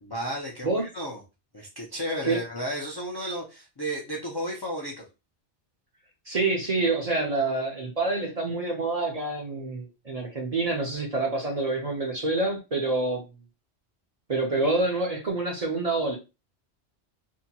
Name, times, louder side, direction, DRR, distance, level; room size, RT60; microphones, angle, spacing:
voice 1, 0.0-1.2 1.5-5.1, equal, 40° left, -2 dB, 0.3 m, -33 dB
voice 2, 6.3-13.3 14.3-16.2, right 3 dB, 45° right, 0 dB, 0.5 m, -27 dB
2.7 x 2.2 x 2.7 m, 0.28 s
omnidirectional pair, 1.2 m